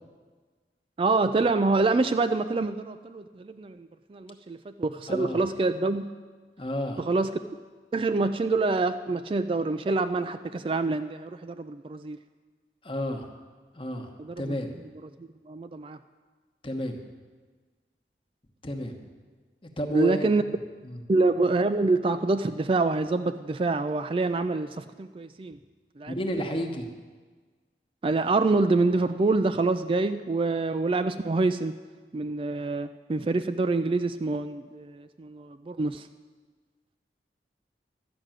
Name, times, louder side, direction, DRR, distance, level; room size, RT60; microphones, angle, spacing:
voice 1, 1.0-6.1 7.0-7.3 7.9-12.2 14.2-14.6 15.0-16.0 19.9-20.4 21.1-25.6 26.0-26.6 28.0-31.7 32.1-36.1, right 3 dB, 30° right, 9 dB, 0.3 m, -26 dB
voice 2, 5.1-5.4 6.6-7.0 12.8-13.3 13.7-14.1 14.4-14.7 16.6-17.0 18.6-19.0 19.6-20.2 20.8-21.0 26.1-26.9, left 1 dB, 30° left, 4 dB, 1.1 m, -31 dB
12.5 x 6.1 x 9.0 m, 1.4 s
head